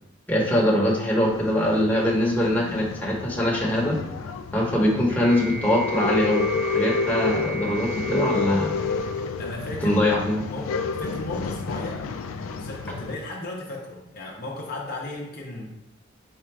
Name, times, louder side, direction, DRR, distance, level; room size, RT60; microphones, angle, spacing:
voice 1, 0.3-4.0 4.5-6.4 6.7-8.7 9.8-10.5, left 1 dB, 10° left, -5 dB, 0.9 m, -22 dB
Male speech man speaking / Chatter / Rattle, 1.2-13.2, left 4 dB, 85° left, 0.3 m, -30 dB
sound 1, 5.1-9.6, right 2 dB, 55° right, 1.2 m, -37 dB
voice 2, 9.4-10.0 10.5-12.1 12.6-15.8, left 2 dB, 50° left, -1 dB, 0.6 m, -35 dB
4.2 x 2.4 x 4.4 m, 0.87 s
head